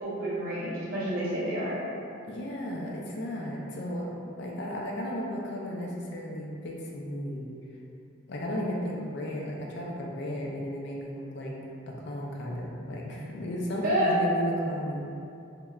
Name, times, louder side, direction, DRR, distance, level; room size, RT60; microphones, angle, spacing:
voice 1, 0.0-1.8 13.8-14.1, right 1 dB, 45° right, -8 dB, 0.6 m, -29 dB
voice 2, 2.2-7.5 8.3-11.6 11.9-15.0, equal, 55° left, -2 dB, 0.4 m, -34 dB
2.9 x 2.2 x 2.3 m, 2.6 s
head